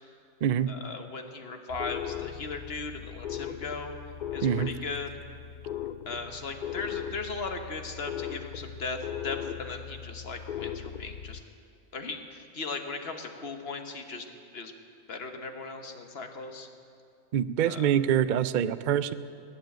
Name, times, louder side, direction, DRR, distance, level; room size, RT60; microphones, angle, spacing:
voice 1, 0.7-4.0 4.3-5.1 6.1-11.4 11.9-14.3 14.5-14.7 15.1-16.7 17.6-17.9, left 4 dB, 50° left, 6 dB, 1.3 m, -37 dB
sound 1, 1.7-11.4, left 10 dB, 75° left, 0.4 m, -38 dB
voice 2, 17.3-19.1, right 9 dB, 70° right, 14 dB, 0.4 m, -25 dB
19.5 x 7.5 x 9.2 m, 2.3 s
omnidirectional pair, 1.4 m